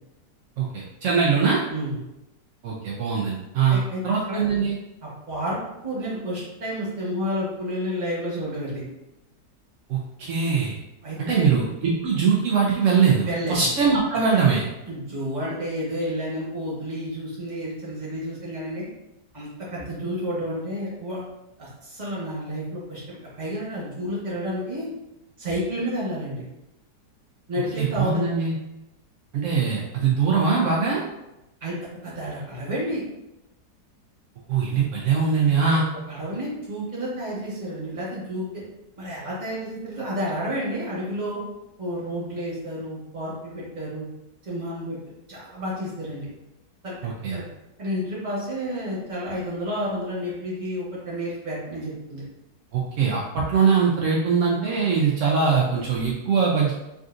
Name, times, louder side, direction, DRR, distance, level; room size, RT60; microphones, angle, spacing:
voice 1, 0.6-1.6 2.6-4.8 9.9-10.8 11.2-14.6 27.8-28.6 29.3-31.0 34.5-35.8 47.0-47.4 52.7-56.7, right 5 dB, 80° right, -3 dB, 0.7 m, -22 dB
voice 2, 3.7-4.0 4.3-4.4 5.0-5.6 5.8-8.8 11.0-11.5 13.2-13.7 14.9-18.8 19.3-21.2 21.6-24.9 25.4-26.4 27.5-28.3 29.5-29.6 31.6-31.8 32.0-33.0 36.1-38.5 39.0-41.4 41.8-44.1 44.4-45.0 45.3-46.3 46.8-47.0 47.3-47.4 47.8-52.2, equal, 30° right, -7 dB, 1.0 m, -30 dB
3.7 x 2.5 x 2.4 m, 0.93 s
omnidirectional pair, 1.8 m